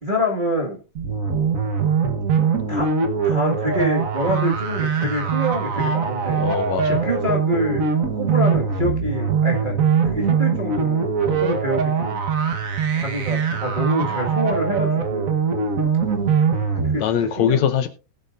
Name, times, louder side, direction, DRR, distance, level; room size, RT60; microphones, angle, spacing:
voice 1, 0.0-0.8 2.7-2.9 3.2-6.4 6.8-7.8 8.1-9.8 10.0-12.2 12.9-15.4 16.8-17.7, equal, 20° right, 1.4 m, -26 dB
sound 1, 0.9-17.0, right 6 dB, 85° right, 0.7 m, -22 dB
voice 2, 6.4-7.0 11.3-11.4 17.0-17.9, left 9 dB, 75° left, 2.0 m, -22 dB
19.5 x 8.3 x 2.5 m
omnidirectional pair, 3.5 m